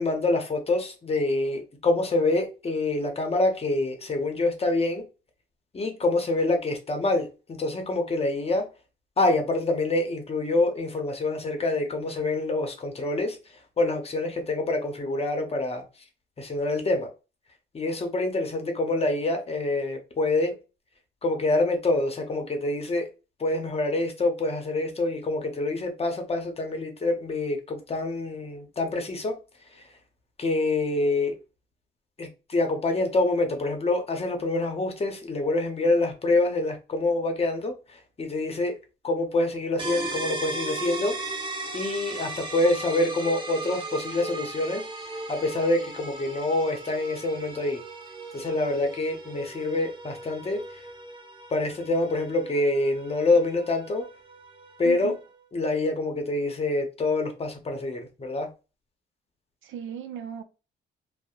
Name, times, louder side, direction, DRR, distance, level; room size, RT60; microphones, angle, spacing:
voice 1, 0.0-5.0 5.7-8.7 9.2-13.4 13.8-15.8 16.4-17.1 17.7-20.5 21.2-23.1 23.4-29.4 30.4-31.4 32.2-38.8 39.0-41.1 41.7-44.8 45.3-47.8 48.3-50.6 51.5-54.1 54.8-55.1 55.5-58.5, left 2 dB, 30° left, 0.7 m, -26 dB
sound 1, 39.8-55.4, right 2 dB, 25° right, 0.7 m, -37 dB
voice 2, 54.8-55.2 59.6-60.4, right 8 dB, 80° right, 0.5 m, -36 dB
2.7 x 2.0 x 2.4 m
cardioid pair, 90°, 20 cm